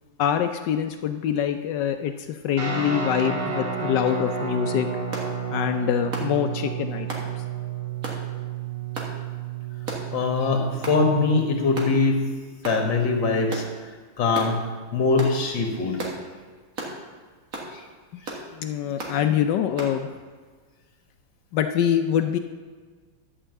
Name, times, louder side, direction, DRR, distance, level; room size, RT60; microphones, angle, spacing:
voice 1, 0.2-4.9 5.5-7.3 18.1-18.2 18.5-20.1 21.5-22.4, left 9 dB, 80° left, 7 dB, 0.9 m, -25 dB
Guitar, 2.6-12.0, right 7 dB, 75° right, 2.8 m, -31 dB
Close Combat Whip Stick Switch Hit Hitting Carpet, 5.1-5.3 6.1-6.3 7.1-7.3 8.0-8.2 8.9-9.1 9.9-10.1 10.8-11.0 11.7-11.9 12.6-12.8 13.5-13.7 14.3-14.5 15.2-15.4 16.0-16.2 16.8-17.0 17.5-17.7 18.2-18.4 19.0-19.2 19.8-19.9, right 2 dB, 40° right, 1.8 m, -34 dB
voice 2, 10.1-12.3 12.6-14.6 14.9-16.0 17.7-17.8, left 3 dB, 60° left, 2 dB, 2.1 m, -23 dB
11.5 x 5.6 x 7.6 m, 1.5 s
omnidirectional pair, 2.4 m